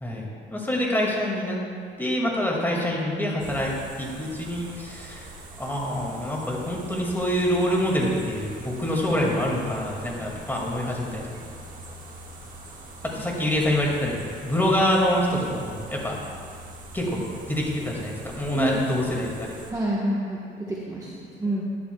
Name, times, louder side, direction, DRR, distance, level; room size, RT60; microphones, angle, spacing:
voice 1, 0.0-1.6 2.0-5.3 5.6-11.2 13.1-16.2 16.9-17.2 17.5-19.5, equal, 10° left, -2 dB, 2.1 m, -26 dB
sound 1, 3.4-19.7, right 2 dB, 40° right, 1.7 m, -43 dB
voice 2, 19.7-21.6, right 1 dB, 15° right, -6 dB, 1.2 m, -28 dB
11.5 x 11.0 x 2.3 m, 2.2 s
cardioid pair, 90°, 20 cm